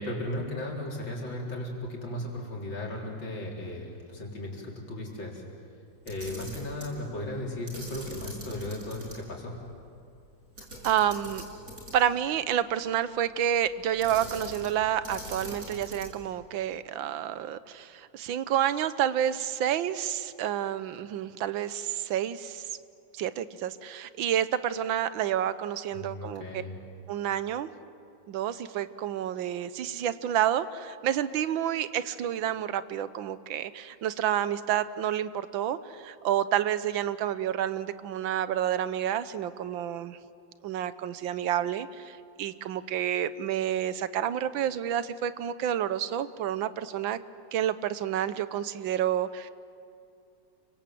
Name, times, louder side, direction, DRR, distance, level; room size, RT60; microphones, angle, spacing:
voice 1, 0.0-5.4 6.0-9.6 25.9-26.8, left 1 dB, 75° left, -2 dB, 4.8 m, -36 dB
Camera, 6.0-6.9 7.7-9.2 9.5-9.6 10.6-12.2 14.0-14.8 15.0-16.2, right 1 dB, 45° right, 5.9 m, -42 dB
voice 2, 10.8-11.4 11.9-22.8 23.1-26.4 27.1-27.7 28.3-40.2 40.6-47.2 47.5-49.5, right 10 dB, 85° right, 14 dB, 1.6 m, -29 dB
29.5 x 24.0 x 7.7 m, 2.5 s
omnidirectional pair, 2.1 m